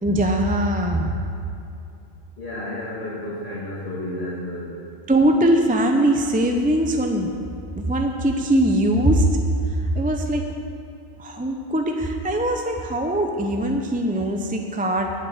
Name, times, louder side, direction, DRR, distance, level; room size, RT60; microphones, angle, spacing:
voice 1, 0.0-1.1 5.1-7.3 7.8-9.3 9.9-10.5 11.2-15.2, right 1 dB, 10° right, 3 dB, 0.5 m, -21 dB
voice 2, 2.4-4.8, left 1 dB, 60° left, -8 dB, 2.0 m, -31 dB
9.1 x 7.6 x 8.5 m, 2.6 s
omnidirectional pair, 1.2 m